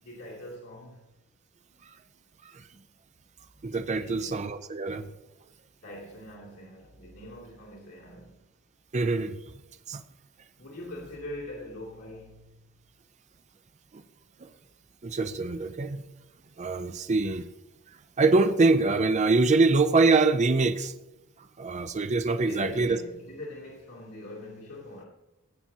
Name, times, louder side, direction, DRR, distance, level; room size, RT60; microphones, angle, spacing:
voice 1, 0.0-1.0 3.9-4.3 5.8-8.4 10.6-12.7 22.3-25.1, left 1 dB, 85° left, 2.6 m, -42 dB
voice 2, 3.6-5.1 8.9-9.4 9.9-10.0 13.9-14.0 14.4-14.5 15.0-16.0 16.6-17.4 18.2-20.9 21.6-23.0, right 3 dB, 35° right, 0.5 m, -24 dB
18.5 x 7.3 x 2.8 m
head